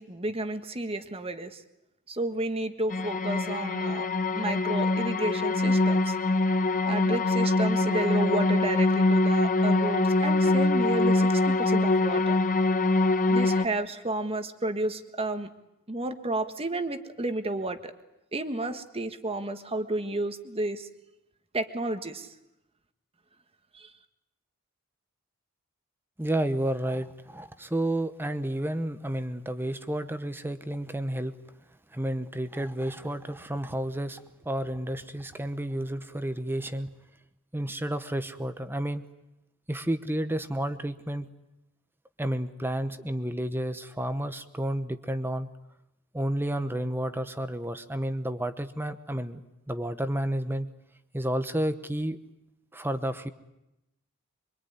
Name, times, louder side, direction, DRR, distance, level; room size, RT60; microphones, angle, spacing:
voice 1, 0.0-1.6 2.1-4.1 4.3-6.1 6.8-12.4 13.3-15.5 15.9-17.9 18.3-20.9 21.5-22.3 23.7-23.9, right 2 dB, 25° right, 8 dB, 1.6 m, -31 dB
sound 1, 2.9-13.7, left 2 dB, 40° left, 1.0 m, -24 dB
voice 2, 26.2-31.4 31.9-36.9 37.5-39.0 39.7-41.3 42.2-45.5 46.1-49.4 49.7-50.7 51.1-52.2 52.7-53.3, right 1 dB, 10° right, 10 dB, 1.0 m, -31 dB
24.5 x 24.0 x 9.6 m, 0.90 s
head